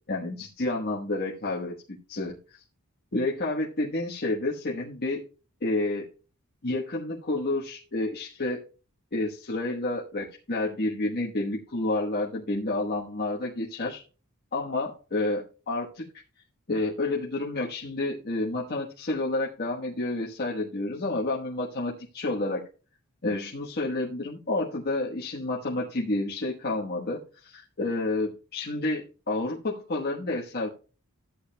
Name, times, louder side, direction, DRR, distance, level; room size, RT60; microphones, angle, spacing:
voice 1, 0.1-2.6 3.1-5.2 5.6-6.1 6.6-8.6 9.1-14.0 14.5-16.1 16.7-22.6 23.2-30.7, left 2 dB, 45° left, -3 dB, 1.2 m, -30 dB
14.5 x 8.6 x 2.2 m, 0.36 s
head